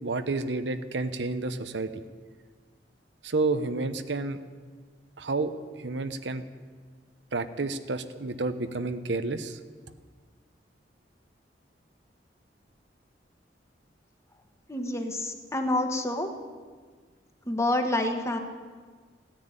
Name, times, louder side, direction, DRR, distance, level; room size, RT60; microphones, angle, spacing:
voice 1, 0.0-1.9 3.2-4.4 5.2-6.4 7.3-9.6, right 3 dB, 70° right, 10 dB, 0.9 m, -30 dB
voice 2, 14.7-16.3 17.4-18.4, left 1 dB, 15° left, 5 dB, 1.4 m, -28 dB
15.5 x 10.0 x 8.9 m, 1.5 s
head